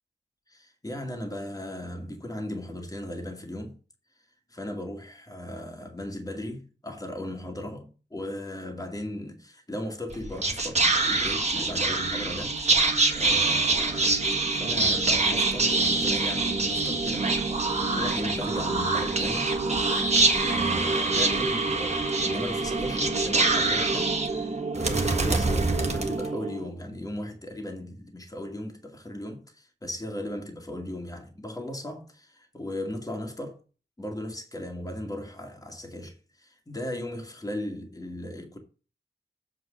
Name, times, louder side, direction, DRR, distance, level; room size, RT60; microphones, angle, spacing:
voice 1, 0.5-3.8 4.5-19.5 20.4-24.1 24.7-33.6 34.0-38.6, left 1 dB, 20° left, 2.2 m, -37 dB
Whispering, 10.1-26.7, right 3 dB, 35° right, 1.7 m, -25 dB
7.9 x 5.3 x 6.4 m
wide cardioid pair, 110°, 19 cm